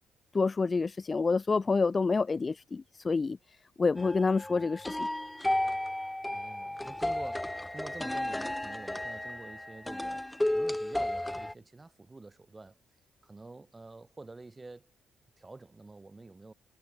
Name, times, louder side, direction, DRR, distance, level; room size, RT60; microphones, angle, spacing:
voice 1, 0.3-3.4 3.8-5.1, left 4 dB, 30° left, 0.4 m, -28 dB
sound 1, 4.0-11.5, left 1 dB, 10° left, 1.3 m, -33 dB
voice 2, 6.3-10.3 10.5-12.8 13.2-15.0 15.4-16.5, right 3 dB, 20° right, 2.1 m, -48 dB
cardioid pair, 90°, 0 cm